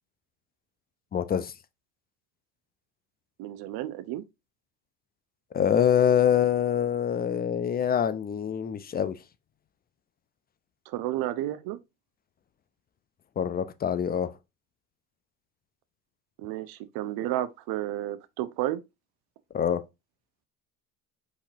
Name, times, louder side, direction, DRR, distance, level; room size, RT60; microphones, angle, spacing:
voice 1, 1.1-1.5 5.5-9.1 13.4-14.3 19.5-19.8, left 9 dB, 20° left, 0.4 m, -25 dB
voice 2, 3.4-4.2 10.9-11.8 16.4-18.8, right 14 dB, 55° right, 0.7 m, -32 dB
4.9 x 4.1 x 2.6 m
hypercardioid pair, 70°, 46 cm